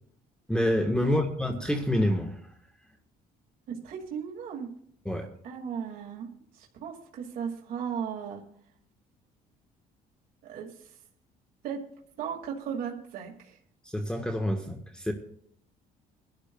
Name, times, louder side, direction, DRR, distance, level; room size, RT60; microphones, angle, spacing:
voice 1, 0.5-2.4 5.1-5.3 13.9-15.1, left 1 dB, 5° left, 4 dB, 1.3 m, -27 dB
voice 2, 3.7-4.7 5.4-6.3 6.5-8.4 10.4-11.0 11.6-11.8 12.2-13.6, right 7 dB, 65° right, -1 dB, 2.2 m, -36 dB
23.0 x 12.0 x 2.3 m, 0.66 s
cardioid pair, 125°, 16 cm